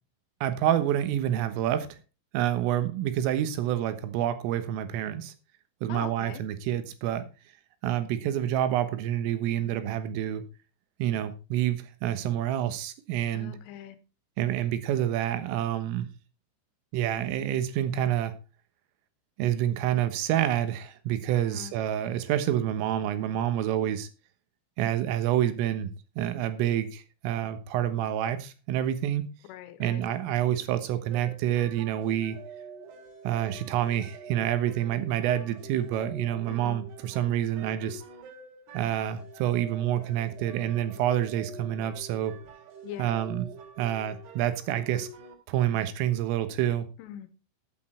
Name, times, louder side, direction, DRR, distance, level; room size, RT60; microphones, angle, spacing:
voice 1, 0.4-1.9 2.3-5.3 5.8-7.2 7.8-10.5 11.0-13.5 14.4-16.1 16.9-18.3 19.4-24.1 24.8-25.9 26.2-29.3 29.8-32.4 33.3-38.0 38.7-42.4 43.0-43.5 43.8-45.1 45.5-46.9, right 11 dB, 85° right, 3.8 m, -28 dB
voice 2, 5.9-6.4 13.3-14.0 21.3-21.7 29.4-30.0 36.5-36.8 42.8-43.1 47.0-47.4, left 11 dB, 85° left, 3.6 m, -42 dB
sound 1, 31.1-45.3, right 4 dB, 60° right, 4.0 m, -46 dB
13.0 x 8.5 x 4.4 m
omnidirectional pair, 5.7 m